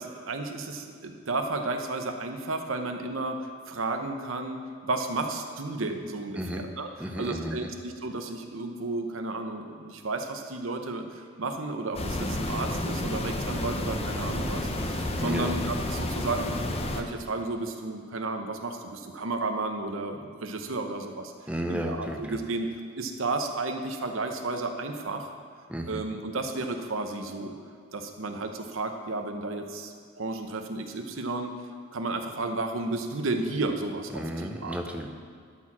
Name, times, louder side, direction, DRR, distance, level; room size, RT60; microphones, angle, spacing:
voice 1, 0.0-3.4 3.7-4.6 4.8-16.5 16.9-21.3 21.7-25.3 25.9-27.5 27.9-31.5 31.9-34.8, right 2 dB, 90° right, 5 dB, 0.9 m, -33 dB
voice 2, 7.0-7.7 15.2-15.6 21.5-22.4 25.7-26.0 34.1-35.1, equal, 5° right, 3 dB, 0.7 m, -33 dB
sound 1, 11.9-17.0, left 1 dB, 30° left, 0.7 m, -31 dB
12.5 x 4.6 x 6.0 m, 2.2 s
head